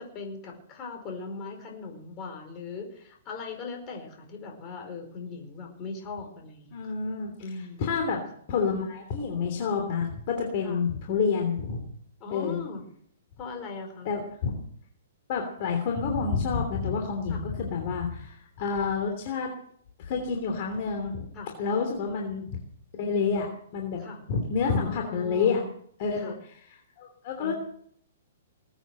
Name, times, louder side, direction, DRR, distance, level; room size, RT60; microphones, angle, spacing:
voice 1, 0.0-6.9 7.4-8.2 10.6-10.8 12.2-12.8 13.4-14.1 17.3-17.4 21.3-21.5 24.0-24.2 24.6-25.7 26.2-26.4 27.4-27.5, left 4 dB, 25° left, 3 dB, 4.9 m, -39 dB
voice 2, 6.7-7.3 7.8-8.2 8.5-11.8 12.3-12.6 14.0-14.6 15.3-19.5 20.0-21.3 21.6-22.6 23.0-23.5 23.7-24.0 24.3-25.6 26.0-26.3 27.0-27.5, left 5 dB, 45° left, 2 dB, 3.1 m, -28 dB
20.0 x 9.1 x 7.8 m, 0.65 s
hypercardioid pair, 155°, 0 cm